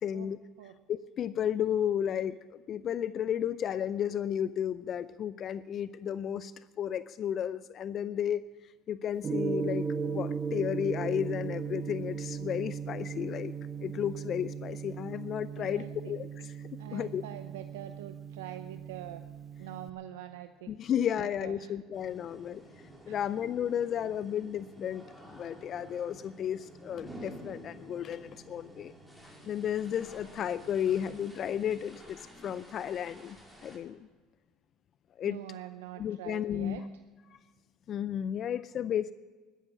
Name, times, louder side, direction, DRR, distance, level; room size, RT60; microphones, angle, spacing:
voice 1, 0.0-0.4 0.9-6.5 6.8-8.4 8.9-13.5 13.8-16.5 16.9-17.2 20.7-22.6 23.1-28.9 29.4-33.4 33.6-34.1 35.2-35.4 36.0-36.8 37.9-39.1, left 9 dB, 50° left, 16 dB, 0.4 m, -33 dB
Gong, 9.2-19.9, right 6 dB, 35° right, 1.2 m, -37 dB
voice 2, 15.6-16.1 16.8-19.2 19.6-20.8 21.2-21.7 23.1-23.2 35.2-36.9, right 12 dB, 80° right, 9 dB, 0.6 m, -44 dB
sound 1, 21.9-33.8, right 1 dB, ahead, 4.5 m, -51 dB
13.0 x 12.5 x 7.1 m, 1.4 s
hypercardioid pair, 75°, 0 cm